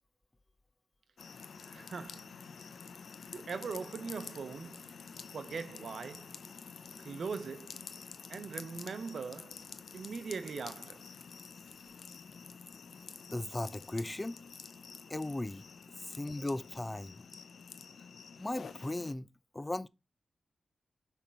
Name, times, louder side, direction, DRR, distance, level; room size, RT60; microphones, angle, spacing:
sound 1, 1.2-19.1, left 5 dB, 80° left, 0.5 m, -49 dB
voice 1, 1.7-2.4 3.3-5.0 5.3-6.4 7.0-7.8 8.3-9.6 9.9-11.0, right 5 dB, 75° right, 0.8 m, -41 dB
voice 2, 13.3-14.4 15.1-15.6 16.1-17.2 18.4-19.3 19.5-19.9, left 2 dB, 20° left, 0.3 m, -37 dB
6.1 x 3.6 x 5.5 m
cardioid pair, 70°, 0 cm